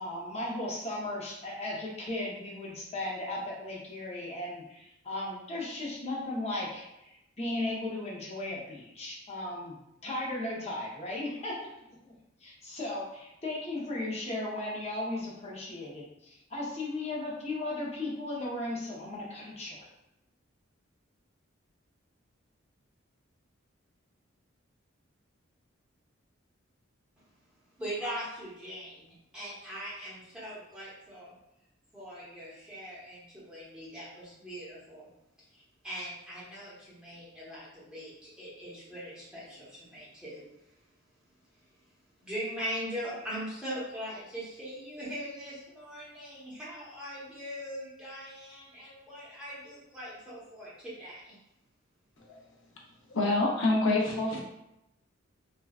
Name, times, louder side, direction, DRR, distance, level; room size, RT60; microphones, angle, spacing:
voice 1, 0.0-9.8 10.0-12.1 12.4-19.8, left 2 dB, 30° left, -4 dB, 0.7 m, -36 dB
voice 2, 27.8-31.3 31.9-35.1 35.5-40.5 42.2-51.4, equal, 5° right, -9 dB, 0.9 m, -41 dB
voice 3, 53.1-54.4, left 2 dB, 70° left, -2 dB, 0.7 m, -27 dB
3.4 x 2.2 x 2.3 m, 0.86 s
head